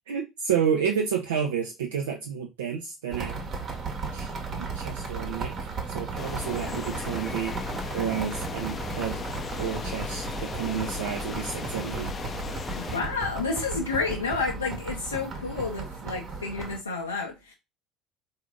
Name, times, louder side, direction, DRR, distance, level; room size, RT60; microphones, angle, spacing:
voice 1, 0.1-3.4 4.1-5.5 5.9-7.6 7.9-9.2 9.6-12.1, right 7 dB, 75° right, 0.5 m, -30 dB
sound 1, 3.1-16.8, right 4 dB, 40° right, 1.0 m, -35 dB
sound 2, 6.2-13.0, left 5 dB, 35° left, 0.4 m, -37 dB
voice 2, 12.8-17.5, left 4 dB, 85° left, 0.5 m, -30 dB
3.9 x 2.5 x 3.5 m
figure-of-eight pair, 60°, 0 cm